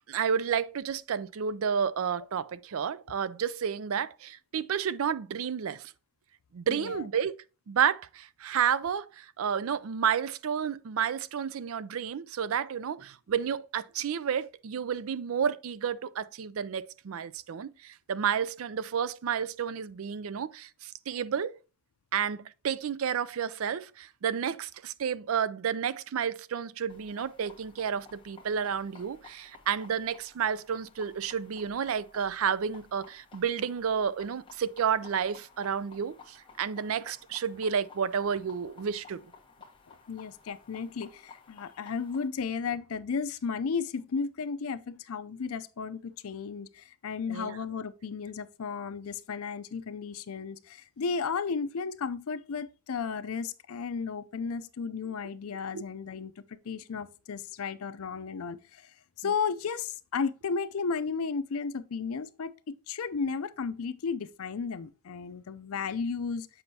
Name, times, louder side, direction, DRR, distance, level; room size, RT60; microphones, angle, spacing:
voice 1, 0.1-5.9 6.5-7.4 7.7-21.6 22.1-39.2 47.3-47.6 55.7-55.8, right 7 dB, 80° right, 0.4 m, -31 dB
voice 2, 6.7-7.1 39.9-58.9 59.2-66.5, left 5 dB, 90° left, 0.5 m, -34 dB
sound 1, 26.9-42.3, left 5 dB, 25° left, 1.2 m, -55 dB
7.9 x 5.4 x 2.8 m
head